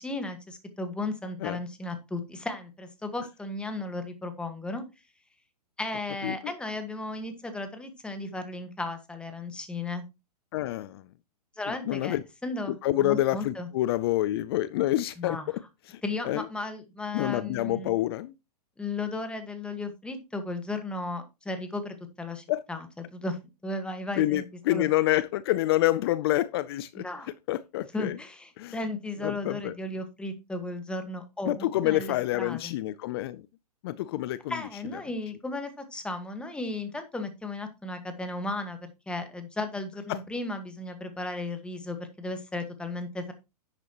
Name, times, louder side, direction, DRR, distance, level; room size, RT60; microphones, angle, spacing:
voice 1, 0.0-4.8 5.8-10.1 11.6-12.2 12.4-13.7 15.2-15.5 16.0-18.0 18.8-22.9 23.1-24.4 24.7-24.9 26.9-27.3 27.9-32.7 34.5-43.3, left 2 dB, 5° left, 1.5 m, -35 dB
voice 2, 10.5-11.0 11.7-12.2 12.8-15.6 15.9-16.4 17.1-18.3 22.5-22.6 24.2-27.0 27.5-28.2 28.6-28.8 29.2-29.7 31.5-33.5 33.8-34.6 40.1-40.2, left 15 dB, 40° left, 0.5 m, -27 dB
11.0 x 8.1 x 2.9 m
hypercardioid pair, 140°, 21 cm